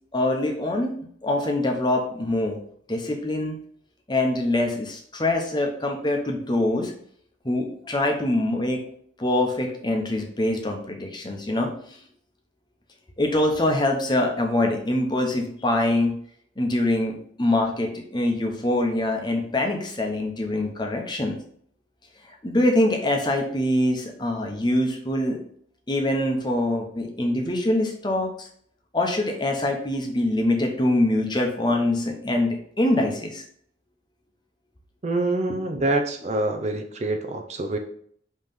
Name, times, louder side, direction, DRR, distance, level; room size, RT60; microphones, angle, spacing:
voice 1, 0.1-0.9 1.2-2.6 2.9-3.6 4.1-6.9 7.4-8.8 9.2-12.0 13.2-16.1 16.6-21.4 22.2-25.4 25.9-28.5 28.9-33.4 35.7-35.8, left 1 dB, 25° left, 2 dB, 0.9 m, -24 dB
voice 2, 35.0-37.8, right 2 dB, 35° right, 5 dB, 0.5 m, -26 dB
5.5 x 3.2 x 5.5 m, 0.62 s
head